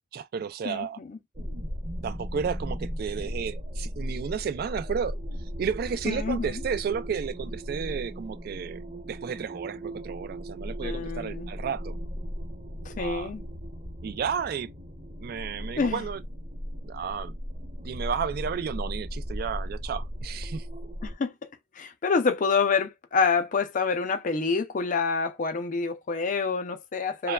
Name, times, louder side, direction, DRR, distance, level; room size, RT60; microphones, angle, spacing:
voice 1, 0.1-1.0 2.0-5.2 5.6-8.8 9.1-12.0 13.0-13.3 14.0-14.7 15.2-16.2 16.8-17.3 17.8-20.7 27.2-27.3, right 7 dB, 55° right, 0.3 m, -32 dB
voice 2, 0.6-1.2 6.1-6.6 10.8-11.5 12.9-13.4 15.8-16.0 21.0-21.3 21.8-27.3, left 5 dB, 45° left, 0.4 m, -27 dB
sound 1, 1.3-21.1, equal, 40° right, 0.8 m, -36 dB
3.0 x 2.2 x 2.2 m
head